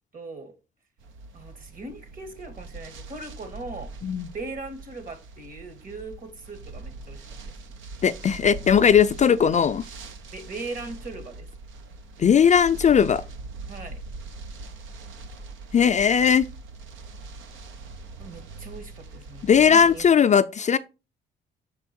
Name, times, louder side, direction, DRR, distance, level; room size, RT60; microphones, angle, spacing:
voice 1, 0.1-0.5 1.3-3.9 4.3-7.5 10.3-11.5 13.7-14.0 18.2-20.1, right 3 dB, 45° right, 1.8 m, -39 dB
sound 1, 1.0-20.1, right 3 dB, 80° right, 0.8 m, -42 dB
voice 2, 8.0-9.8 12.2-13.2 15.7-16.4 19.5-20.8, left 7 dB, 35° left, 0.4 m, -18 dB
6.2 x 4.5 x 4.3 m
cardioid pair, 90°, 20 cm